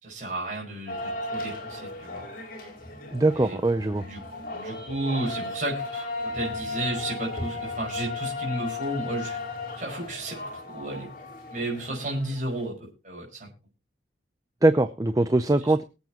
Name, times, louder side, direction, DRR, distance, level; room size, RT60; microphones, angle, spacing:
voice 1, 0.0-2.3 3.3-3.6 4.0-4.2 4.5-9.4 9.8-11.1 11.5-13.5 15.5-15.6, right 2 dB, 45° right, -1 dB, 5.2 m, -33 dB
sound 1, 0.9-12.6, left 3 dB, 50° left, 4.1 m, -35 dB
voice 2, 3.1-4.0 14.6-15.8, right 2 dB, 20° right, 11 dB, 0.6 m, -22 dB
23.0 x 8.2 x 2.9 m, 0.31 s
head